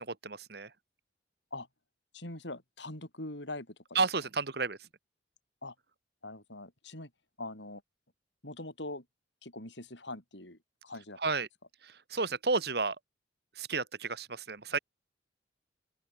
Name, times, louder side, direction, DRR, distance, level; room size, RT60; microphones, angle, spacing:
voice 1, 0.1-0.7 3.9-4.9 11.2-11.5 11.8-13.0 13.5-14.8, right 4 dB, 55° right, 1.6 m, -32 dB
voice 2, 2.1-4.0 5.6-5.7 6.2-7.1 7.4-7.8 8.4-9.0 9.4-11.2, left 2 dB, 75° left, 7.9 m, -43 dB
open air
head